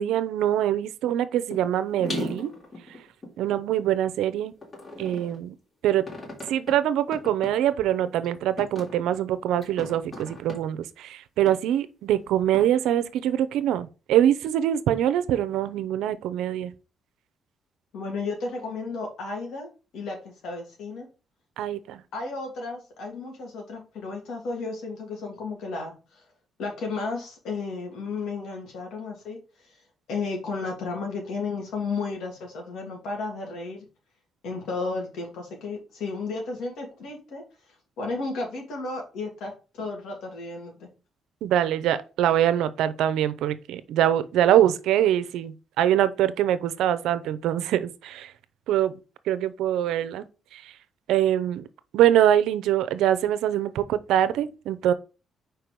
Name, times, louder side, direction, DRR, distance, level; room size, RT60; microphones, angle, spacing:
voice 1, 0.0-2.5 3.4-4.5 5.0-5.5 5.8-6.0 6.5-16.7 21.6-22.0 41.4-48.3 48.7-49.0 49.3-50.3 50.5-50.7 51.1-51.6 51.9-54.9, right 11 dB, 85° right, 0.6 m, -24 dB
sound 1, 1.5-1.7 2.0-3.9 4.6-5.4 6.1-6.7 7.1-7.5 8.1-8.3 8.6-9.0 9.6-10.6 11.5-11.6 12.5-12.6, left 2 dB, 35° left, 3.1 m, -36 dB
voice 2, 17.9-21.1 22.1-26.2 26.6-29.4 29.6-29.8 30.1-33.9 34.4-37.4 38.0-39.5 39.8-40.9, left 3 dB, 80° left, 2.8 m, -33 dB
4.8 x 4.6 x 5.2 m
cardioid pair, 90°, 0 cm